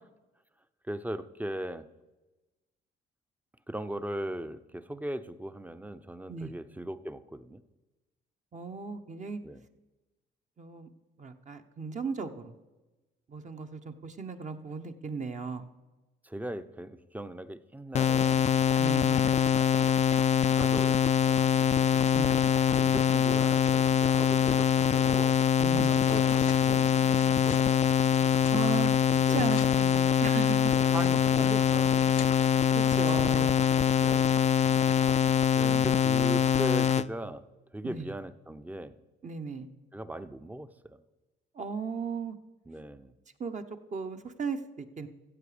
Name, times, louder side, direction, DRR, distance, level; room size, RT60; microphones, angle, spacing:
voice 1, 0.9-1.9 3.7-7.6 9.4-9.6 16.2-18.5 20.5-21.7 22.8-25.4 25.8-27.9 29.1-29.5 30.9-32.3 33.9-34.4 35.6-37.4 37.7-39.0 39.9-41.0 42.7-43.1, right 1 dB, 10° right, 12 dB, 0.6 m, -39 dB
voice 2, 8.5-9.4 10.6-10.9 11.2-12.5 13.3-15.7 18.8-19.2 22.1-22.4 25.6-25.9 28.5-28.9 29.3-30.7 32.7-33.6 35.6-35.9 37.8-38.1 39.2-39.7 41.6-42.4 43.4-43.6 43.9-45.1, right 5 dB, 35° right, 6 dB, 0.9 m, -36 dB
sound 1, 17.9-37.1, left 8 dB, 35° left, 0.4 m, -24 dB
sound 2, 25.8-33.2, left 10 dB, 85° left, 0.7 m, -46 dB
14.5 x 7.8 x 5.0 m, 1.1 s
cardioid pair, 90°, 20 cm